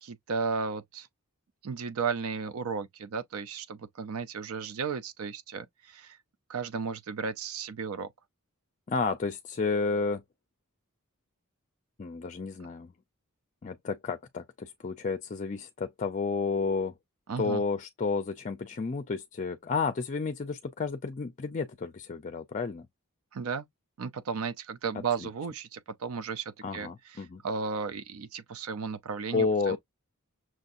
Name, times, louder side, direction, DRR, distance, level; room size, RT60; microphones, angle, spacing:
voice 1, 0.0-1.1 1.6-6.2 6.5-8.1 17.3-17.6 23.3-23.7 24.0-29.8, right 5 dB, 70° right, 0.5 m, -34 dB
voice 2, 8.9-10.2 12.0-12.9 13.6-16.9 17.4-22.9 25.2-25.3 26.6-27.4 29.3-29.8, left 4 dB, 35° left, 0.4 m, -31 dB
6.2 x 2.6 x 2.5 m
head